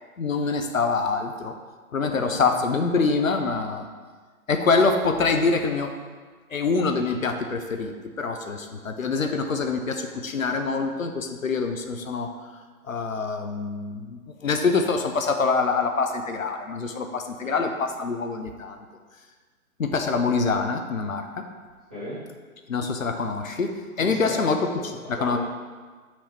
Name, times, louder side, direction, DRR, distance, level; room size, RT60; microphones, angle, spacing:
voice 1, 0.2-1.5 1.9-3.8 4.5-5.9 6.5-12.3 12.9-18.8 19.8-21.5 22.7-24.6 25.1-25.4, left 4 dB, 65° left, 6 dB, 0.7 m, -25 dB
voice 2, 2.0-2.4 17.4-17.7 21.9-22.2 24.0-25.4, equal, 5° right, -17 dB, 0.5 m, -36 dB
6.0 x 3.2 x 5.8 m, 1.5 s
figure-of-eight pair, 135°, 44 cm